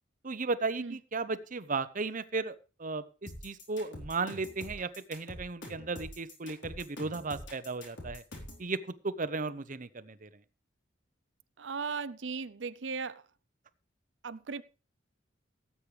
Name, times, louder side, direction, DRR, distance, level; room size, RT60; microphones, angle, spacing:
voice 1, 0.2-8.2 8.6-10.3, right 3 dB, 45° right, 0.9 m, -35 dB
sound 1, 3.3-8.6, left 1 dB, 70° left, 4.4 m, -45 dB
voice 2, 11.6-13.2 14.2-14.6, right 5 dB, 75° right, 0.7 m, -37 dB
18.0 x 8.6 x 3.4 m
head